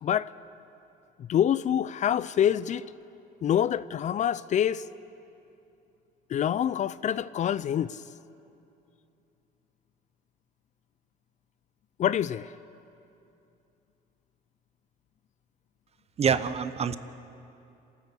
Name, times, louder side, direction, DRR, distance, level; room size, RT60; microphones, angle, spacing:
voice 1, 1.2-2.9 3.4-4.8 6.3-8.0 12.0-12.5, left 10 dB, 45° left, 0.5 m, -26 dB
voice 2, 16.2-17.0, right 6 dB, 40° right, 0.9 m, -25 dB
28.0 x 13.5 x 8.3 m
cardioid pair, 110°, 17 cm